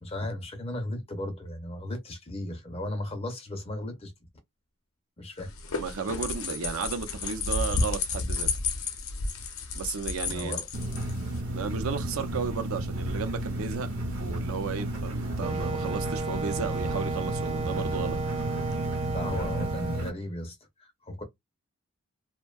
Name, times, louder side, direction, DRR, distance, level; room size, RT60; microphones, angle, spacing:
voice 1, 0.0-4.1 5.2-5.5 10.3-10.7 19.1-21.2, left 1 dB, 25° left, 0.5 m, -35 dB
sound 1, 5.4-11.4, left 4 dB, 70° left, 0.6 m, -31 dB
voice 2, 5.8-8.5 9.7-10.6 11.5-13.9 14.2-18.2, right 5 dB, 75° right, 0.5 m, -34 dB
sound 2, 10.7-20.1, right 1 dB, 60° right, 0.9 m, -33 dB
Wind instrument woodwind instrument, 15.4-20.0, right 4 dB, 25° right, 0.4 m, -34 dB
2.6 x 2.1 x 2.2 m
head